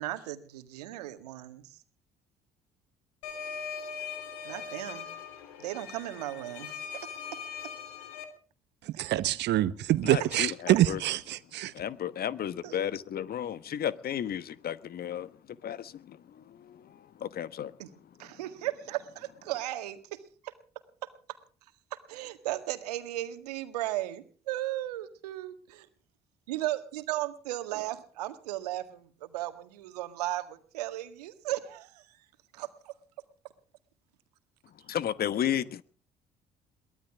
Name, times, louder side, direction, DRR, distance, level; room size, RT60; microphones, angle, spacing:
voice 1, 0.0-1.7 4.4-5.1 5.6-7.2 8.9-9.2 10.7-10.8 12.6-12.9 17.8-17.9 18.2-20.5 21.9-25.9 26.5-32.0 32.5-32.9, right 15 dB, 85° right, 1.9 m, -36 dB
sound 1, 3.2-8.2, left 6 dB, 80° left, 3.0 m, -40 dB
voice 2, 9.0-11.7, right 14 dB, 60° right, 1.2 m, -26 dB
voice 3, 10.0-11.0 11.7-15.3 15.6-17.7 34.9-35.8, left 10 dB, 50° left, 1.2 m, -33 dB
23.0 x 17.5 x 3.6 m
hypercardioid pair, 55°, 20 cm